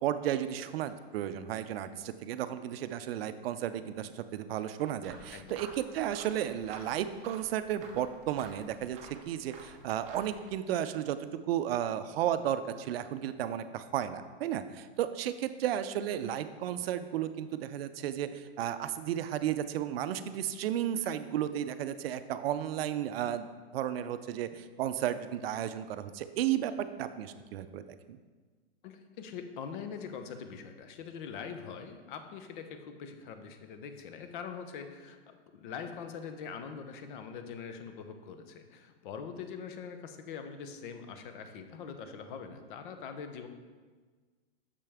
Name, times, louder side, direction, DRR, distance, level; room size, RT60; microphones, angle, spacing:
voice 1, 0.0-9.0 9.3-11.2 11.5-23.5 23.7-28.2, right 11 dB, 65° right, 11 dB, 0.5 m, -33 dB
sound 1, 5.0-10.5, right 4 dB, 20° right, 0.6 m, -50 dB
voice 2, 28.8-43.5, left 6 dB, 50° left, 7 dB, 0.7 m, -43 dB
6.7 x 5.4 x 3.4 m, 1.4 s
hypercardioid pair, 145°, 32 cm